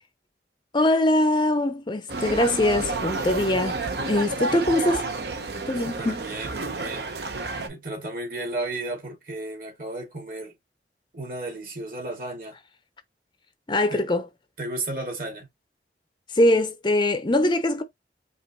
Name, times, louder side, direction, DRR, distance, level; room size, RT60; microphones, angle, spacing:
voice 1, 0.7-5.1 5.7-6.3 13.7-14.2 16.3-17.8, left 1 dB, 25° left, 0.6 m, -22 dB
sound 1, 2.1-7.7, right 3 dB, 70° right, 0.9 m, -30 dB
voice 2, 6.0-7.1 7.7-10.5 11.1-12.6 13.9-14.1 14.6-15.5, right 2 dB, 50° right, 2.4 m, -33 dB
5.3 x 2.9 x 3.0 m
head